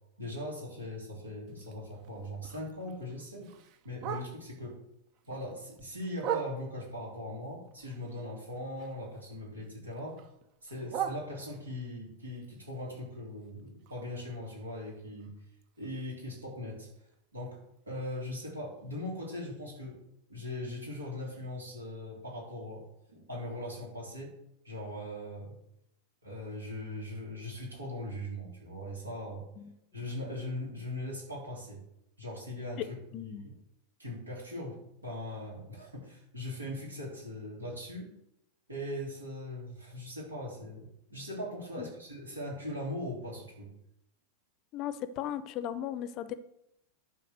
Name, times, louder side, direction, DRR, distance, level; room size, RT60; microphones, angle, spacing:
voice 1, 0.2-3.5 3.8-4.8 5.3-10.2 10.6-15.3 15.8-16.9 17.3-20.0 20.3-24.4 24.6-25.6 26.2-29.4 29.9-31.8 32.2-33.5 34.0-38.1 38.7-43.7, left 1 dB, 80° right, -2 dB, 3.7 m, -40 dB
Bark, 1.5-4.7 5.1-7.0 7.4-9.3 9.5-11.9 12.3-16.2 16.6-16.7 17.0-17.3 17.8-17.9 18.2-18.3 18.8-18.9, right 9 dB, 45° right, 0.8 m, -42 dB
voice 2, 33.1-33.4 41.8-41.9 44.7-46.3, left 11 dB, 40° left, 14 dB, 0.7 m, -36 dB
11.0 x 4.8 x 6.4 m, 0.81 s
figure-of-eight pair, 90°, 0 cm